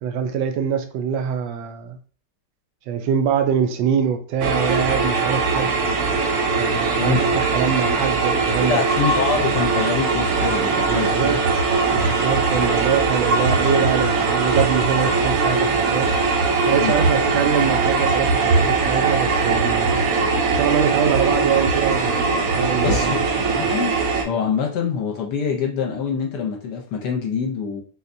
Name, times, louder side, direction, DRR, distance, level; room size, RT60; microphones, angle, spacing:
voice 1, 0.0-2.0 2.9-5.7 6.6-8.8 10.9-11.4 11.9-16.1 16.7-20.0 20.5-23.2, right 7 dB, 85° right, 7 dB, 1.3 m, -24 dB
sound 1, 4.4-24.2, right 4 dB, 70° right, 0.8 m, -20 dB
voice 2, 8.5-11.4 16.8-16.9 22.8-23.9 24.2-27.8, left 6 dB, 70° left, 0 dB, 1.2 m, -25 dB
4.0 x 2.1 x 2.5 m, 0.41 s
omnidirectional pair, 2.0 m